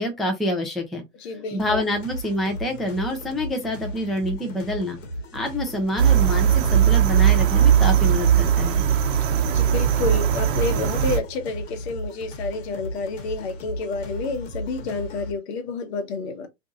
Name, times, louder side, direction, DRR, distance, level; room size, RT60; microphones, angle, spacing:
voice 1, 0.0-1.0 1.5-5.0 5.3-8.7, left 1 dB, ahead, 0.5 m, -27 dB
voice 2, 1.2-1.8 9.2-16.5, left 4 dB, 60° left, 1.1 m, -29 dB
sound 1, 1.6-15.3, equal, 80° left, 1.1 m, -36 dB
sound 2, 6.0-11.2, right 9 dB, 45° right, 0.8 m, -19 dB
2.6 x 2.3 x 3.9 m
hypercardioid pair, 115°, 37 cm